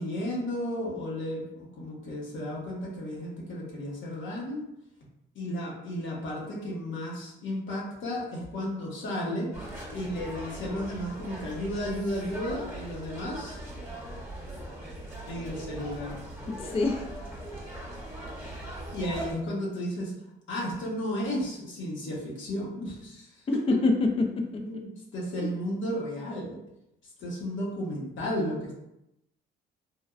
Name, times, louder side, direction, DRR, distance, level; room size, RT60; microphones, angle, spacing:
voice 1, 0.0-4.6 5.3-13.6 15.2-16.2 18.9-20.1 20.5-23.6 24.6-26.6 27.2-28.8, equal, 75° left, -2 dB, 0.9 m, -33 dB
sound 1, 9.5-19.3, right 1 dB, 10° right, 1.0 m, -40 dB
voice 2, 16.5-17.0 18.4-18.6 23.5-24.8 25.4-25.5, left 3 dB, 30° left, 3 dB, 0.4 m, -27 dB
3.3 x 2.2 x 2.3 m, 0.84 s
cardioid pair, 90°, 20 cm